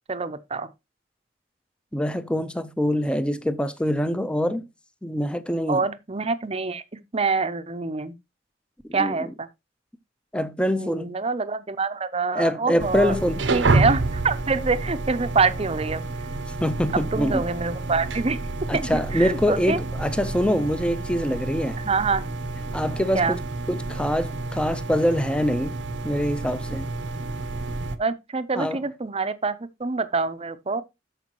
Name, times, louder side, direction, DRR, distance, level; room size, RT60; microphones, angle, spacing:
voice 1, 0.1-0.7 5.7-8.2 8.9-9.5 10.6-13.2 13.5-16.0 16.9-18.4 18.7-19.8 21.8-22.2 23.1-23.4 28.0-30.8, right 4 dB, 35° right, 0.7 m, -26 dB
voice 2, 1.9-4.7 5.0-5.9 8.9-9.2 10.3-11.1 12.3-13.4 16.6-17.4 18.7-21.8 22.7-23.4 23.7-25.8 26.0-26.9 28.6-28.8, equal, 5° left, 0.6 m, -24 dB
sound 1, 12.8-28.0, right 2 dB, 85° right, 0.9 m, -29 dB
13.5 x 5.0 x 3.0 m
head